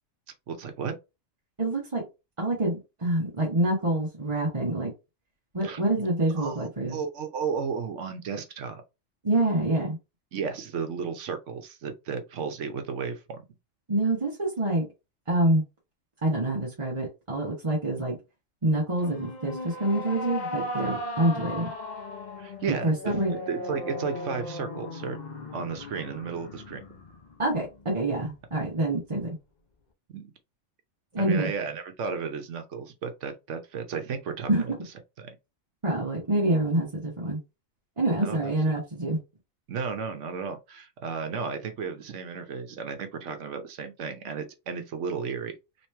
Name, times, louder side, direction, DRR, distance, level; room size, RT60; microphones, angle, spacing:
voice 1, 0.5-1.0 5.6-5.8 6.4-8.8 10.3-13.4 22.4-25.2 25.5-26.8 30.1-30.3 31.2-34.7 35.2-35.4 38.2-38.5 39.7-45.5, right 5 dB, 65° right, 1.0 m, -34 dB
voice 2, 1.6-2.0 2.4-4.9 5.5-7.0 9.2-10.0 13.9-14.9 15.3-15.6 16.2-18.2 18.6-21.7 22.7-23.4 27.4-29.3 31.1-31.5 34.5-34.7 35.8-37.4 38.0-39.2, right 1 dB, 25° right, 0.8 m, -26 dB
sound 1, 19.0-28.4, left 1 dB, 40° left, 0.7 m, -37 dB
3.1 x 3.0 x 3.2 m
omnidirectional pair, 1.4 m